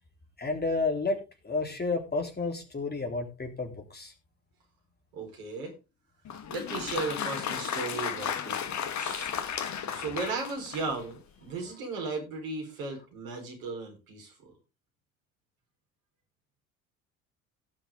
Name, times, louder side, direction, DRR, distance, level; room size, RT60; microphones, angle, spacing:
voice 1, 0.4-4.1, left 3 dB, 25° left, 4 dB, 3.6 m, -31 dB
voice 2, 5.1-5.8 6.5-9.3 9.9-14.5, right 3 dB, 70° right, 1 dB, 4.8 m, -36 dB
Applause, 6.2-11.1, left 8 dB, 40° left, 1.6 m, -34 dB
18.0 x 6.2 x 3.7 m, 0.28 s
figure-of-eight pair, 55°, 42 cm